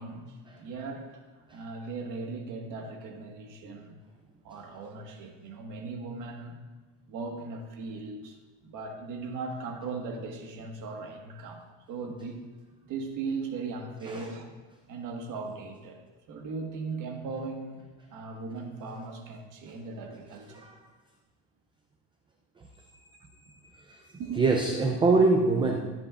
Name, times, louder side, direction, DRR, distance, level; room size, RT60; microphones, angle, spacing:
voice 1, 0.0-3.9 4.4-6.6 7.1-8.4 8.6-12.4 12.9-14.5 14.9-16.0 16.3-20.7 24.2-24.4, right 4 dB, 45° right, 2 dB, 1.6 m, -38 dB
voice 2, 24.4-25.9, right 3 dB, 10° right, 2 dB, 0.4 m, -24 dB
13.5 x 10.5 x 2.5 m, 1.3 s
cardioid pair, 150°, 44 cm